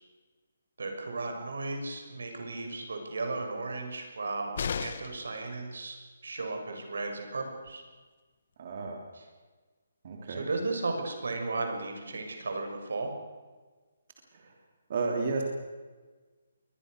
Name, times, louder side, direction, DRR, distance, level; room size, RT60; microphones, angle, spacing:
voice 1, 0.8-6.0 6.2-7.8 9.1-9.2 10.3-13.1, right 3 dB, 80° right, 4 dB, 6.3 m, -35 dB
sound 1, 4.5-5.3 7.2-7.3 7.7-7.8, left 6 dB, 40° left, 1.2 m, -34 dB
voice 2, 8.6-9.0 10.0-10.5 14.3-14.5 14.9-15.4, right 4 dB, 35° right, 1 dB, 3.1 m, -32 dB
23.0 x 20.5 x 6.6 m, 1.4 s
hypercardioid pair, 175°, 0 cm